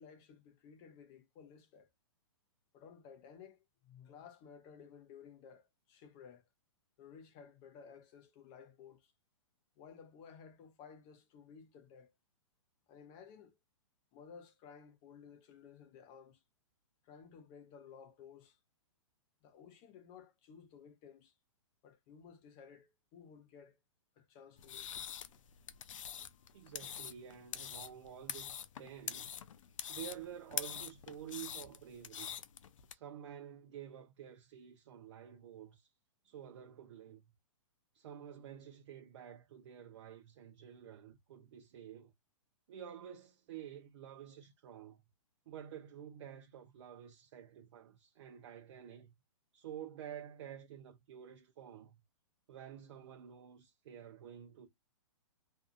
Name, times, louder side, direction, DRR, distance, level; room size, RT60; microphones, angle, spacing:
voice 1, 0.0-1.9 2.7-6.4 7.0-9.1 9.8-12.1 12.9-13.6 14.1-16.4 17.0-18.6 19.4-21.3 21.8-23.8 24.2-24.9 26.2-26.3, left 7 dB, 25° left, 0.5 m, -56 dB
sound 1, 24.6-32.9, left 9 dB, 75° left, 0.5 m, -45 dB
voice 2, 26.5-29.3 29.9-32.3 32.9-35.9 36.2-37.3 37.9-42.1 42.7-45.0 45.5-49.1 49.5-52.0 52.5-54.7, right 9 dB, 55° right, 0.6 m, -50 dB
2.6 x 2.4 x 2.4 m
hypercardioid pair, 155°, 17 cm